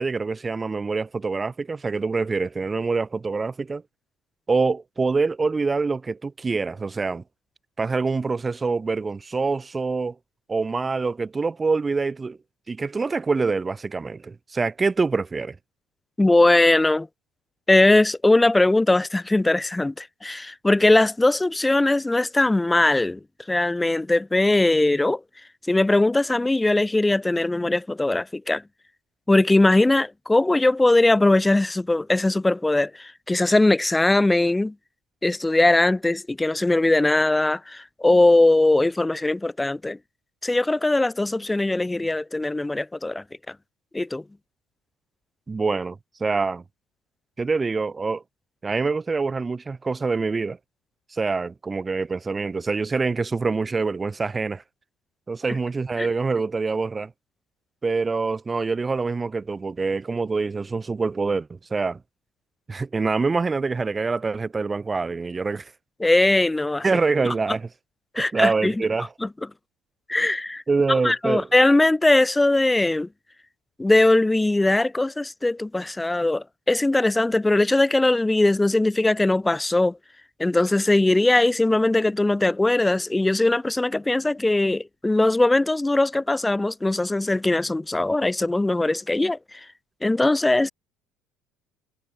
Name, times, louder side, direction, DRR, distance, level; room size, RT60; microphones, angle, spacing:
voice 1, 0.0-3.8 4.5-7.2 7.8-10.2 10.5-12.4 12.7-15.6 45.5-46.6 47.4-48.2 48.6-50.6 51.1-54.6 55.3-57.1 57.8-62.0 62.7-65.7 66.8-67.7 68.2-69.1 70.7-71.5, right 4 dB, 20° right, 1.7 m, -25 dB
voice 2, 16.2-17.1 17.7-23.2 23.5-25.2 25.7-28.6 29.3-34.7 35.2-40.0 40.4-43.2 43.9-44.2 56.0-56.1 66.0-66.8 67.2-67.3 68.1-68.7 69.2-69.3 70.1-70.6 71.0-73.1 73.8-80.0 80.4-89.4 90.0-90.7, left 2 dB, 10° left, 1.0 m, -20 dB
supercardioid pair, 90°, 0 cm